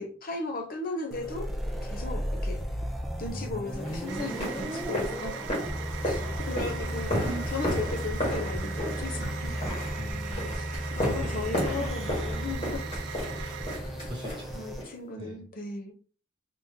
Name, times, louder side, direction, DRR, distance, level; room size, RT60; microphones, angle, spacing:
voice 1, 0.0-1.5 1.8-2.6 3.2-5.5 6.0-7.2 7.5-9.6 10.5-12.8 14.5-15.9, left 3 dB, 45° left, 0.8 m, -36 dB
sound 1, 1.1-14.8, equal, ahead, 0.5 m, -34 dB
sound 2, 3.8-14.9, left 1 dB, 30° left, 1.7 m, -34 dB
sound 3, 4.1-13.8, right 9 dB, 65° right, 0.3 m, -41 dB
voice 2, 6.0-6.6 7.2-7.5 9.9-10.5 11.0-12.1 13.3-13.6 14.1-14.7 15.2-15.5, equal, 25° right, 1.3 m, -41 dB
3.5 x 3.1 x 2.8 m
head